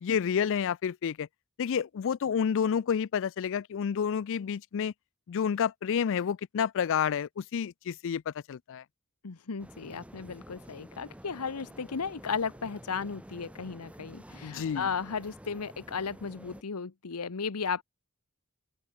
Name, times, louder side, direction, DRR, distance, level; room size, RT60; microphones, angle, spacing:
voice 1, 0.0-1.3 1.6-4.9 5.3-8.8 14.4-14.9, left 7 dB, 60° left, 0.4 m, -29 dB
voice 2, 9.2-17.8, left 5 dB, 85° left, 0.9 m, -35 dB
sound 1, 9.6-16.6, equal, 5° right, 1.2 m, -50 dB
open air
head